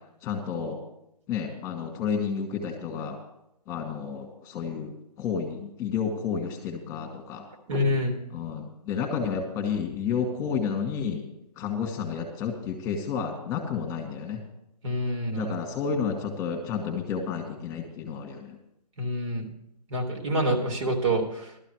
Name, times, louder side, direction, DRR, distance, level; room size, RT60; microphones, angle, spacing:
voice 1, 0.2-0.8 1.3-3.2 3.7-4.9 5.2-7.5 8.3-11.2 11.6-14.4 15.4-18.6, left 6 dB, 15° left, 2 dB, 2.2 m, -31 dB
voice 2, 7.7-8.2 14.8-15.6 19.0-19.5 19.9-21.5, equal, 50° right, 2 dB, 3.3 m, -27 dB
18.0 x 13.0 x 4.9 m, 0.81 s
figure-of-eight pair, 140°, 21 cm